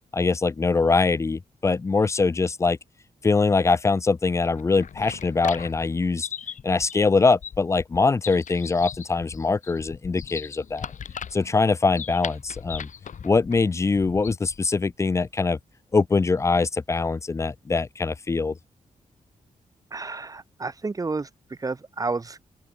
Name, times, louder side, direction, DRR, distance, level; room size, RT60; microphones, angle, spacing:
voice 1, 0.1-2.8 3.2-6.3 6.6-10.9 11.3-12.9 13.2-15.6 15.9-18.5, left 4 dB, 20° left, 0.3 m, -23 dB
sound 1, 4.5-14.7, left 7 dB, 60° left, 3.3 m, -39 dB
voice 2, 19.9-22.4, right 3 dB, 25° right, 1.3 m, -31 dB
open air
wide cardioid pair, 145°, 14 cm